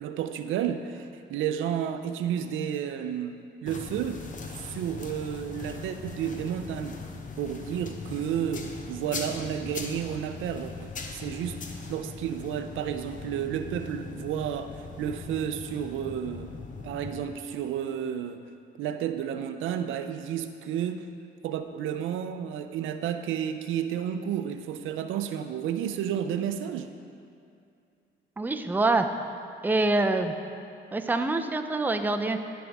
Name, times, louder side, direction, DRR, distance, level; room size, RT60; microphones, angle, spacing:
voice 1, 0.0-4.2 4.5-7.0 7.4-16.5 16.8-18.4 18.8-21.1 21.4-26.9, right 9 dB, 80° right, 8 dB, 0.5 m, -31 dB
sound 1, 3.7-17.2, left 4 dB, 40° left, 0.8 m, -40 dB
voice 2, 28.4-29.1 29.6-30.3 30.9-32.4, right 2 dB, 10° right, 6 dB, 0.5 m, -25 dB
13.5 x 5.2 x 3.5 m, 2.5 s
cardioid pair, 90°, 20 cm